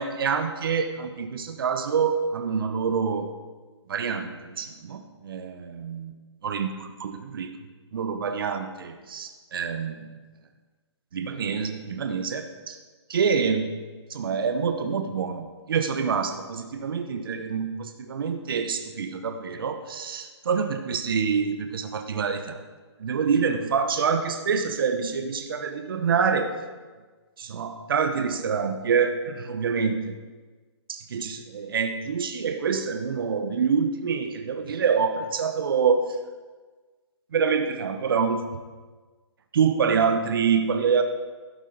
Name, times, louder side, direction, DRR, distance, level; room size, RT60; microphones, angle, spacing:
voice 1, 0.0-3.3 3.9-6.1 6.4-7.5 7.9-10.1 11.1-12.8 13.1-13.8 14.1-22.6 23.0-26.5 27.4-30.1 30.9-36.0 37.3-38.4 39.5-41.0, right 6 dB, 50° right, 7 dB, 0.9 m, -26 dB
12.5 x 7.3 x 5.3 m, 1.4 s
hypercardioid pair, 160°, 15 cm